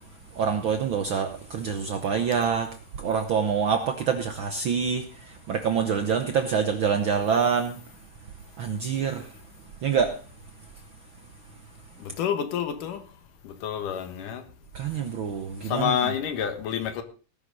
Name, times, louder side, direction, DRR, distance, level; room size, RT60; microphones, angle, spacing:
voice 1, 0.4-2.7 3.0-5.0 5.5-7.8 8.6-9.3 9.8-10.1 14.7-16.1, right 6 dB, 75° right, 7 dB, 1.1 m, -26 dB
voice 2, 12.0-13.0 13.4-14.4 15.7-17.0, left 9 dB, 90° left, 9 dB, 3.0 m, -28 dB
18.5 x 11.0 x 4.0 m, 0.36 s
omnidirectional pair, 3.6 m